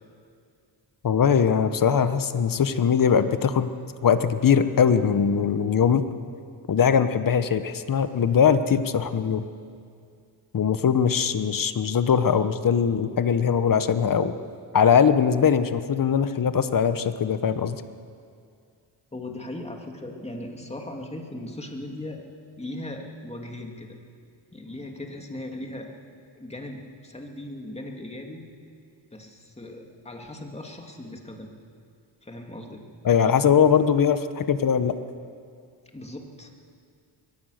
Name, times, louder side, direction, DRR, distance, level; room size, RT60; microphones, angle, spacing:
voice 1, 1.0-3.7 4.0-6.0 6.7-9.4 10.5-14.3 14.7-17.8 33.0-34.9, left 7 dB, 45° left, 11 dB, 1.1 m, -21 dB
voice 2, 19.1-22.2 22.6-24.0 24.5-25.9 26.3-28.5 29.1-31.5 32.2-32.8 35.9-36.5, left 1 dB, 15° left, 2 dB, 2.6 m, -38 dB
22.0 x 18.0 x 6.6 m, 2.3 s
cardioid pair, 105°, 47 cm